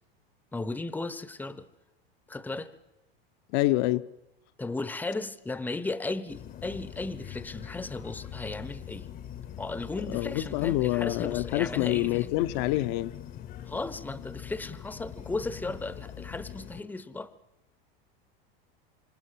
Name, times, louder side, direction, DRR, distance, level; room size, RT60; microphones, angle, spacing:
voice 1, 0.5-1.7 2.3-2.7 4.6-9.1 9.6-12.3 13.7-17.3, left 3 dB, 5° left, 0.9 m, -35 dB
voice 2, 3.5-4.1 10.1-13.1, left 17 dB, 55° left, 1.0 m, -26 dB
sound 1, 6.3-16.8, left 10 dB, 30° left, 1.0 m, -42 dB
26.5 x 26.0 x 7.6 m
supercardioid pair, 145°, 30 cm